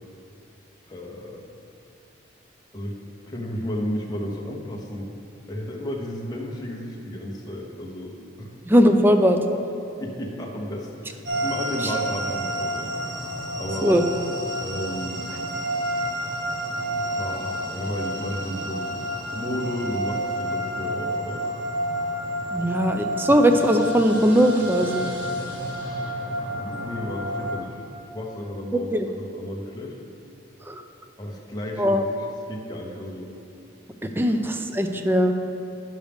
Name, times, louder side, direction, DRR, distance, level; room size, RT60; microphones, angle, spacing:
voice 1, 0.9-1.4 2.7-3.0 3.3-5.1 5.5-8.5 10.0-12.9 13.5-14.0 14.6-15.3 17.1-19.0 19.3-21.5 22.5-22.8 23.2-23.4 26.5-27.8 28.1-30.0 31.2-33.3 34.2-34.3, left 1 dB, 20° left, -2 dB, 0.9 m, -33 dB
voice 2, 8.7-9.4 11.8-11.9 13.8-14.0 22.5-25.1 28.9-29.1 30.7-30.8 31.8-32.1 34.0-35.5, equal, 10° right, 6 dB, 0.4 m, -19 dB
sound 1, 11.3-27.6, right 1 dB, 65° right, 1.7 m, -30 dB
10.0 x 6.4 x 3.5 m, 2.6 s
head